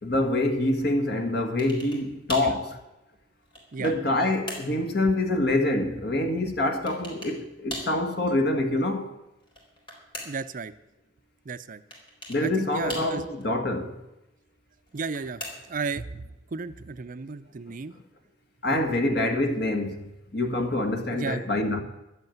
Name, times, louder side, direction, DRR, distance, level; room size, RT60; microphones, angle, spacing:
voice 1, 0.0-2.8 3.8-9.1 12.3-13.9 18.6-21.8, left 1 dB, 60° left, 1.9 m, -26 dB
sound 1, 1.6-2.0 2.3-2.6 3.2-4.0 4.5-4.8 6.9-7.4 7.7-8.0 9.4-10.5 11.9-12.4 12.9-13.4 14.9-15.8, equal, 25° left, 4.1 m, -39 dB
voice 2, 10.3-10.7 11.5-11.8 12.4-13.3 14.9-15.4 15.7-17.9 18.7-18.8 19.5-19.6 21.1-21.4, right 4 dB, 45° right, 0.5 m, -34 dB
12.5 x 8.2 x 9.2 m
head